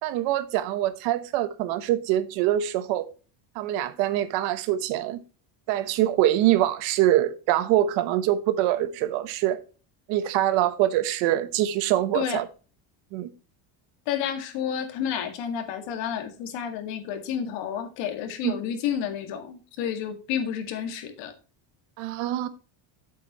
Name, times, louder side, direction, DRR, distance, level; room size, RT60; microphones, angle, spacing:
voice 1, 0.0-3.1 3.5-5.2 5.7-9.6 10.1-12.5 13.1-13.3 18.4-18.5 22.0-22.5, right 13 dB, 80° right, 1.1 m, -24 dB
voice 2, 14.1-21.3, left 8 dB, 70° left, 2.0 m, -30 dB
8.4 x 8.0 x 3.0 m
cardioid pair, 155°, 46 cm